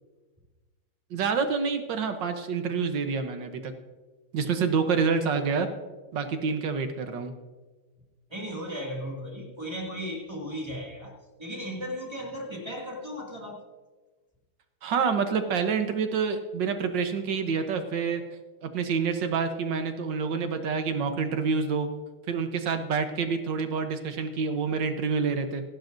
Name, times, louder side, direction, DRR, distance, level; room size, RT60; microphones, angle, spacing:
voice 1, 1.1-3.7 4.3-5.7 6.1-7.3 14.8-18.2 18.6-21.9 22.3-25.6, right 5 dB, 65° right, 7 dB, 1.6 m, -27 dB
voice 2, 8.3-11.1 11.4-13.6, equal, 15° right, -1 dB, 2.2 m, -36 dB
26.0 x 12.0 x 2.6 m, 1.3 s
omnidirectional pair, 2.2 m